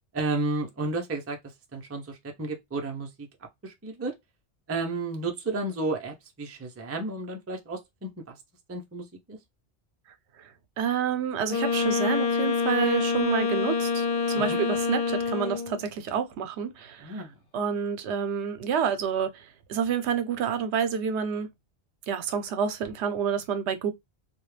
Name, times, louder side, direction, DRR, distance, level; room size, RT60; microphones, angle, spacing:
voice 1, 0.1-1.4 1.7-3.3 3.6-4.1 4.7-8.4 8.7-9.4 14.4-14.6 17.0-17.3, right 2 dB, 25° right, 0.3 m, -32 dB
voice 2, 10.4-17.2 17.5-21.5 22.1-23.9, right 7 dB, 80° right, 0.9 m, -29 dB
Wind instrument woodwind instrument, 11.5-15.8, left 5 dB, 60° left, 0.8 m, -26 dB
2.3 x 2.1 x 3.1 m
omnidirectional pair, 1.1 m